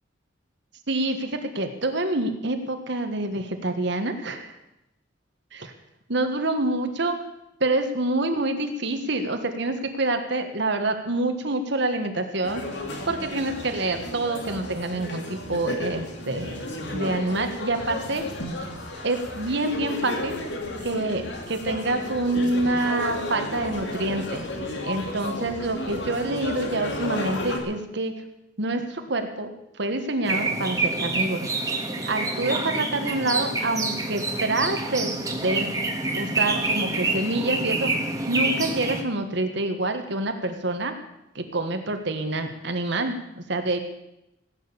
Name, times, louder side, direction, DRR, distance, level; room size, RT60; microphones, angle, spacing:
voice 1, 0.9-4.5 5.5-5.7 6.1-7.2 7.6-12.6 13.0-18.2 19.0-20.3 20.8-24.4 24.8-28.1 28.6-29.5 29.8-31.5 32.1-35.1 35.4-35.7 36.1-37.9 38.3-40.9 41.3-43.8, right 2 dB, 60° right, 6 dB, 1.6 m, -27 dB
sound 1, 12.4-27.6, left 1 dB, 60° left, 2.6 m, -33 dB
sound 2, 30.2-39.0, right 2 dB, 20° right, 1.7 m, -27 dB
17.5 x 9.3 x 7.0 m, 0.88 s
head